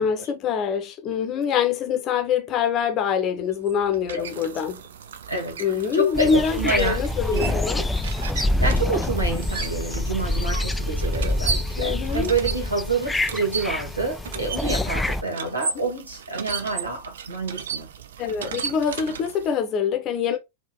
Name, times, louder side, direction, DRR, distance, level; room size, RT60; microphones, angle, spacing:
voice 1, 0.0-4.8 5.6-7.9 11.8-12.3 18.2-20.4, left 7 dB, 35° left, 0.8 m, -24 dB
sound 1, 3.4-19.6, right 7 dB, 60° right, 0.5 m, -36 dB
voice 2, 5.3-5.6 5.9-7.0 7.3-7.9 8.4-17.9, right 3 dB, 80° right, 1.7 m, -28 dB
sound 2, 6.1-15.2, left 1 dB, 5° left, 0.3 m, -26 dB
4.6 x 2.7 x 2.9 m
figure-of-eight pair, 90°, 0 cm